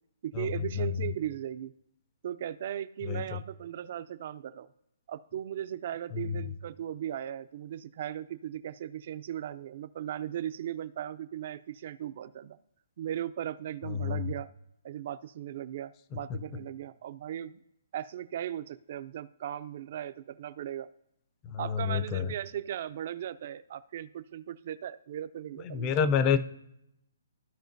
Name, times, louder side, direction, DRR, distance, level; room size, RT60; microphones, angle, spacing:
voice 1, 0.2-1.7 2.2-4.7 5.1-12.6 13.0-14.5 14.8-17.6 17.9-20.9 21.6-25.9, right 11 dB, 45° right, 14 dB, 0.4 m, -37 dB
voice 2, 3.0-3.4 6.1-6.4 13.9-14.2 16.3-16.4 21.4-22.3 25.6-26.4, left 7 dB, 20° left, 13 dB, 0.5 m, -29 dB
14.5 x 5.0 x 2.6 m, 0.81 s
hypercardioid pair, 160°, 0 cm